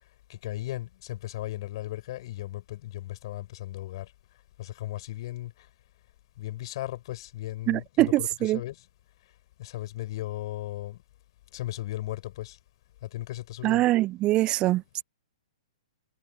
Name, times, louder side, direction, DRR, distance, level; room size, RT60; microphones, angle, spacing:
voice 1, 0.3-4.1 4.6-5.7 6.4-8.8 9.6-11.0 11.5-12.6 13.0-13.8, left 15 dB, 45° left, 7.3 m, -36 dB
voice 2, 7.7-8.6 13.6-15.0, right 16 dB, 25° right, 0.4 m, -24 dB
figure-of-eight pair, 115°, 4 cm